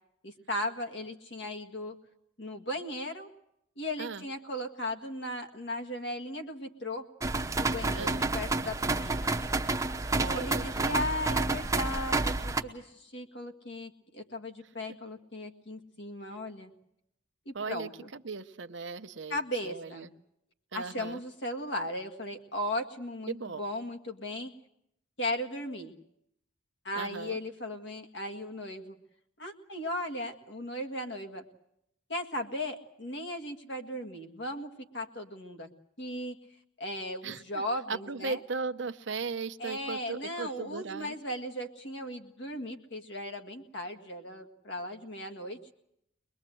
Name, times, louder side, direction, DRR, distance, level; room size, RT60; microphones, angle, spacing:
voice 1, 0.2-2.0 2.4-3.3 3.8-7.1 7.6-9.3 10.4-16.7 17.5-18.1 19.3-20.1 20.7-24.5 25.2-25.9 26.8-29.0 29.4-31.5 32.1-35.7 36.0-36.4 36.8-38.4 39.6-45.6, left 1 dB, 60° left, 6 dB, 1.8 m, -37 dB
sound 1, 7.2-12.6, right 3 dB, 15° right, 0.9 m, -29 dB
voice 2, 10.2-10.9 17.5-20.1 20.7-21.2 23.3-23.6 26.9-27.4 37.2-37.6 37.9-41.1, right 4 dB, 65° right, 10 dB, 0.9 m, -37 dB
23.5 x 21.0 x 7.7 m, 0.79 s
head